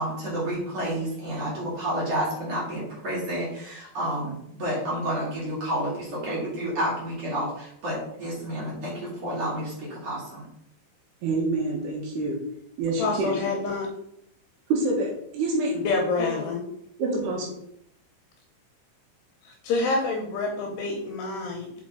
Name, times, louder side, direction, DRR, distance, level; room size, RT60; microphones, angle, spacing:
voice 1, 0.0-10.5, right 1 dB, 40° right, -7 dB, 3.0 m, -30 dB
voice 2, 11.2-12.4 12.8-13.4 14.7-15.8 16.2-16.5 17.0-17.5, right 2 dB, 70° right, -2 dB, 3.1 m, -27 dB
voice 3, 13.0-13.9 15.9-16.6 19.6-21.7, left 3 dB, 80° left, 1 dB, 2.6 m, -27 dB
6.1 x 5.3 x 3.8 m, 0.73 s
omnidirectional pair, 5.3 m